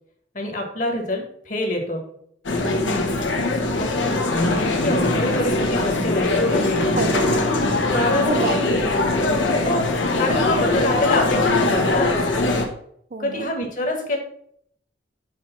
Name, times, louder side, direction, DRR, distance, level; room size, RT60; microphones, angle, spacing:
voice 1, 0.3-2.1 3.7-3.9 4.5-6.9 7.9-8.4 9.6-9.9 10.2-12.1 13.2-14.2, left 1 dB, 45° left, 3 dB, 1.4 m, -25 dB
sound 1, 2.4-12.7, left 2 dB, 90° left, 1.1 m, -21 dB
voice 2, 2.8-3.2 6.9-7.3 8.2-9.4 13.1-13.5, right 2 dB, 50° right, 7 dB, 0.6 m, -29 dB
6.4 x 3.2 x 5.6 m, 0.67 s
head